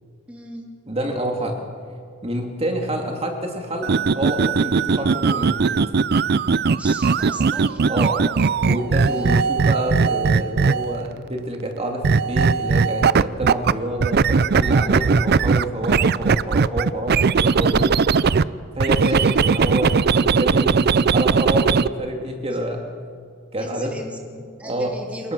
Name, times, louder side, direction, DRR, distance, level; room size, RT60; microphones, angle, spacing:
voice 1, 0.3-0.7 6.8-7.9 9.0-9.4 19.0-19.5 23.6-25.3, equal, 5° right, 0 dB, 2.4 m, -38 dB
voice 2, 0.9-1.6 2.2-5.7 7.9-8.2 8.6-17.9 18.8-19.9 20.2-22.8 23.5-23.9 24.6-24.9 25.2-25.3, right 1 dB, 30° right, 2 dB, 2.5 m, -27 dB
sound 1, 3.8-11.0 12.0-13.7 14.0-18.4 18.8-21.9, right 5 dB, 50° right, 0.5 m, -19 dB
29.0 x 19.0 x 6.2 m, 2.2 s
head